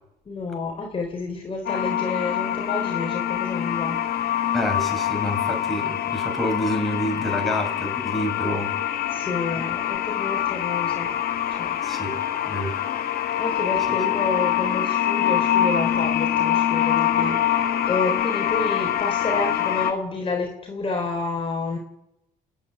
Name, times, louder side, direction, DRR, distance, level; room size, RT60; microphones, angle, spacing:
voice 1, 0.3-4.0 9.1-11.2 11.6-11.8 13.4-21.8, left 3 dB, 30° left, 1 dB, 3.9 m, -29 dB
sound 1, 1.7-19.9, left 10 dB, 65° left, 1.9 m, -24 dB
voice 2, 4.5-8.7 9.6-9.7 11.8-12.2 12.4-12.8 13.9-14.0, left 1 dB, ahead, 0 dB, 6.4 m, -28 dB
29.5 x 10.5 x 9.7 m, 0.90 s
cardioid pair, 110°, 17 cm